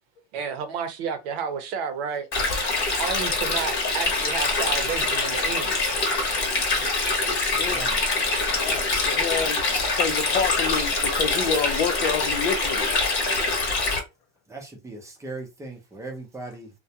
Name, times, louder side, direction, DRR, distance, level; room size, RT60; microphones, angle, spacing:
voice 1, 0.3-2.3 3.0-5.8, right 6 dB, 65° right, 0.7 m, -31 dB
Stream, 2.3-14.0, left 3 dB, 30° left, 1.0 m, -24 dB
voice 2, 8.6-9.6 9.9-13.2, left 6 dB, 70° left, 0.7 m, -29 dB
voice 3, 14.5-16.7, right 2 dB, 10° right, 0.6 m, -38 dB
2.3 x 2.2 x 2.7 m
supercardioid pair, 140°, 34 cm